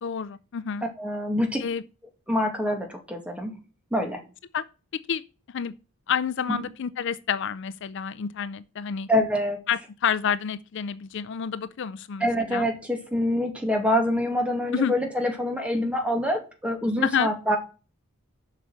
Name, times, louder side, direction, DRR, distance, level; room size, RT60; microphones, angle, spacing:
voice 1, 0.0-0.9 1.6-1.8 4.5-4.6 5.1-5.2 5.5-5.7 6.1-9.1 9.7-12.7 14.7-14.9 17.0-17.3, left 7 dB, 55° left, 0.4 m, -28 dB
voice 2, 1.0-1.7 2.3-3.5 3.9-4.2 6.5-6.6 9.1-9.6 12.2-17.6, equal, 5° right, 2.1 m, -25 dB
7.4 x 5.7 x 7.4 m
head